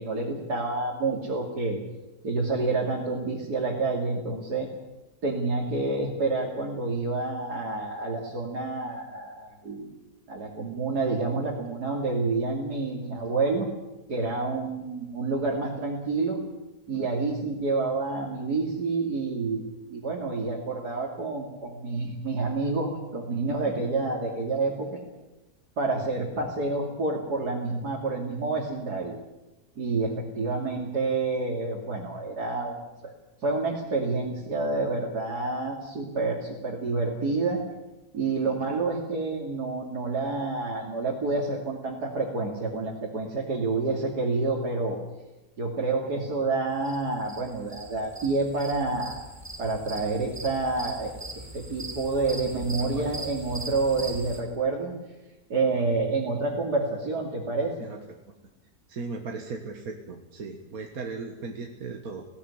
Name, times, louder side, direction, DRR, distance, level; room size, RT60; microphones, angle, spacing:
voice 1, 0.0-1.8 2.2-4.7 5.2-9.8 10.3-13.7 14.1-16.4 16.9-19.6 19.9-25.0 25.8-29.2 29.8-33.1 33.4-37.6 38.1-45.0 45.6-49.2 49.6-51.1 51.5-54.9 55.5-57.7, right 3 dB, 85° right, -2 dB, 3.4 m, -28 dB
sound 1, 46.8-54.4, right 2 dB, 10° right, 3.4 m, -40 dB
voice 2, 58.9-62.2, right 4 dB, 65° right, 3 dB, 2.1 m, -37 dB
19.0 x 17.5 x 9.7 m, 1.0 s
omnidirectional pair, 1.7 m